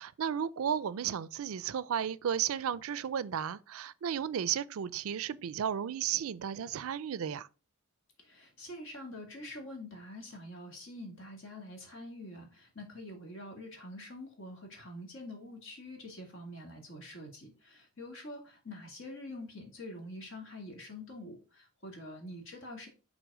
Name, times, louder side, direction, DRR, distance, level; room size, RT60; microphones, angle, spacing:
voice 1, 0.0-7.5, right 8 dB, 80° right, 0.4 m, -34 dB
voice 2, 8.2-22.9, left 1 dB, 60° left, 2.2 m, -46 dB
6.1 x 4.0 x 4.8 m
head